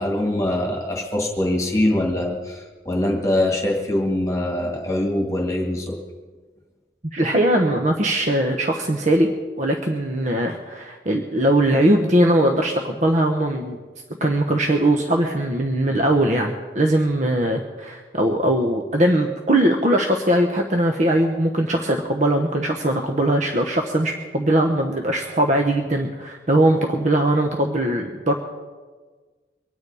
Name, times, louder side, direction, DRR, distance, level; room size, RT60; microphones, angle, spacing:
voice 1, 0.0-6.0, left 1 dB, 15° left, 0 dB, 1.9 m, -23 dB
voice 2, 7.1-9.3 9.6-13.8 14.2-28.3, right 1 dB, 40° right, 3 dB, 1.0 m, -20 dB
24.0 x 9.6 x 4.8 m, 1.4 s
head